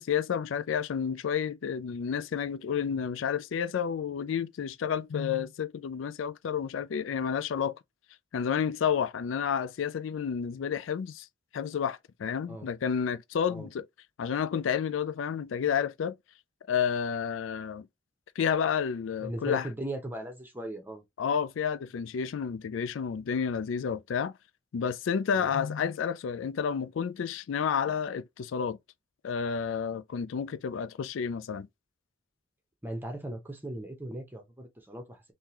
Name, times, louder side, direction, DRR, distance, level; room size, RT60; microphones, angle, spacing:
voice 1, 0.0-7.7 8.3-11.3 11.5-13.9 14.2-16.2 16.7-17.9 18.4-19.7 21.2-24.3 24.7-28.8 29.2-31.7, left 7 dB, 90° left, 0.4 m, -30 dB
voice 2, 19.2-21.0 25.3-25.5 32.8-35.2, right 1 dB, 10° right, 1.0 m, -38 dB
3.6 x 2.8 x 2.9 m
head